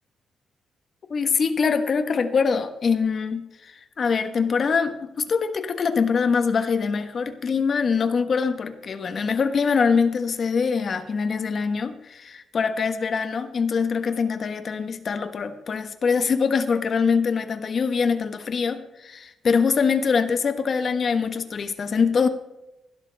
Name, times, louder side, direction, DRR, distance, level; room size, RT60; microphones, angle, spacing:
voice 1, 1.1-22.3, left 5 dB, 45° left, 9 dB, 1.2 m, -23 dB
16.5 x 12.0 x 3.4 m, 0.94 s
cardioid pair, 110°, 0 cm